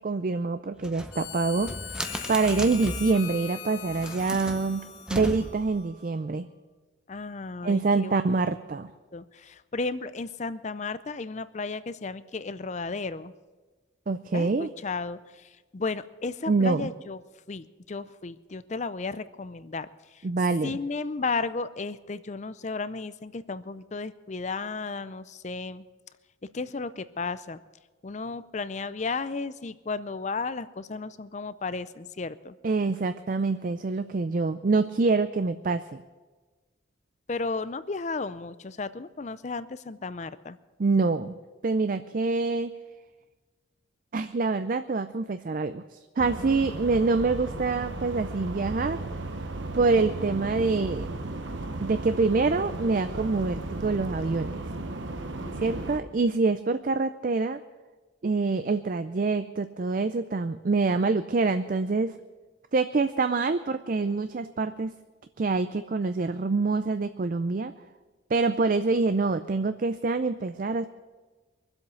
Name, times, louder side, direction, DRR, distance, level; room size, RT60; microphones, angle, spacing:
voice 1, 0.0-4.8 5.1-6.5 7.6-8.9 14.1-14.7 16.5-16.9 20.2-20.8 32.6-36.0 40.8-41.4 41.6-42.7 44.1-49.0 49.7-51.2 51.8-54.6 55.6-57.6 58.2-62.2 62.7-64.9 65.4-67.7 68.3-70.9, right 3 dB, 45° right, 11 dB, 0.4 m, -26 dB
sound 1, 0.8-3.2 3.8-5.8, equal, 5° right, 0.7 m, -37 dB
Harmonica, 1.1-6.3, left 9 dB, 70° left, 2.6 m, -41 dB
voice 2, 7.1-8.2 9.1-13.3 14.3-17.2 17.5-20.3 20.6-25.8 26.5-27.6 28.0-32.5 37.3-40.6 46.4-46.5 55.4-56.0, left 4 dB, 35° left, 15 dB, 0.5 m, -34 dB
sound 2, 46.2-56.0, right 2 dB, 70° right, 1.1 m, -35 dB
23.5 x 7.9 x 6.9 m, 1.3 s
head